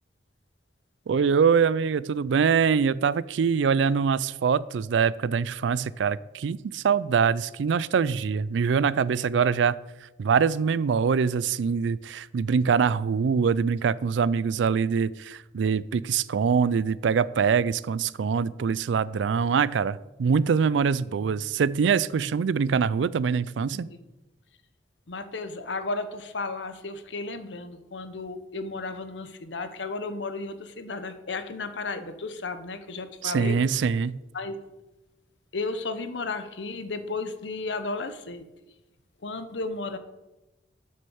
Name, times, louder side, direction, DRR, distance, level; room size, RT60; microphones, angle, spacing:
voice 1, 1.1-9.8 10.2-23.9 33.2-34.2, right 6 dB, 90° right, 19 dB, 0.4 m, -24 dB
voice 2, 25.1-33.6 34.3-34.6 35.5-38.5 39.2-40.0, left 3 dB, 85° left, 10 dB, 0.9 m, -34 dB
7.6 x 6.6 x 7.1 m, 1.0 s
head